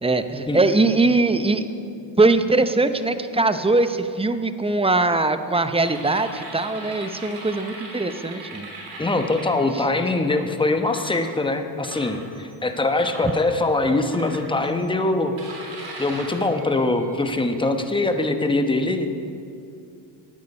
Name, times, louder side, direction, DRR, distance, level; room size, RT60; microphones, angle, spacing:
voice 1, 0.0-1.7 2.2-8.7 9.7-9.8 13.2-13.3, right 2 dB, 10° right, 10 dB, 0.7 m, -21 dB
sound 1, 5.7-10.3 10.8-11.2 11.8-12.6 13.0-13.4 14.1-14.8 15.4-17.7, right 2 dB, 65° right, 3.5 m, -39 dB
voice 2, 9.0-15.3 16.0-19.1, left 2 dB, 10° left, 6 dB, 1.0 m, -23 dB
13.0 x 9.4 x 5.4 m, 2.5 s
supercardioid pair, 75°, 49 cm